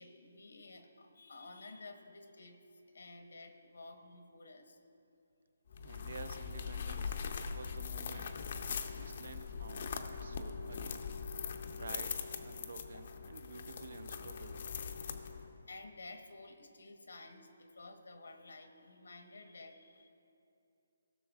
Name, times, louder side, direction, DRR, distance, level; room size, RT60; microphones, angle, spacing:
voice 1, 0.0-2.6 2.9-4.8 9.2-9.3 15.2-20.1, left 2 dB, 85° left, 6 dB, 1.1 m, -53 dB
sound 1, 5.7-15.6, left 6 dB, 40° left, 0.6 m, -41 dB
voice 2, 5.8-7.1 7.5-8.4 8.9-11.1 11.7-14.7, right 4 dB, 60° right, 10 dB, 0.6 m, -51 dB
16.5 x 6.4 x 3.5 m, 2.7 s
hypercardioid pair, 170°, 0 cm